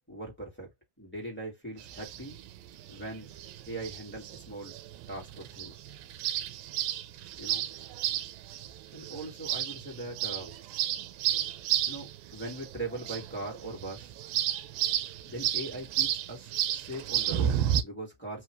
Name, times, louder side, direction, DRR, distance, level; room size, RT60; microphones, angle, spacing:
voice 1, 0.1-0.7 1.0-2.4 2.9-3.3 3.7-4.7 5.1-5.7 7.4-7.6 8.9-10.6 11.2-11.4 11.9-14.1 15.2-18.4, right 2 dB, 5° left, 1.3 m, -40 dB
sound 1, 1.8-17.8, right 11 dB, 85° right, 2.4 m, -33 dB
5.5 x 2.9 x 3.2 m
omnidirectional pair, 4.1 m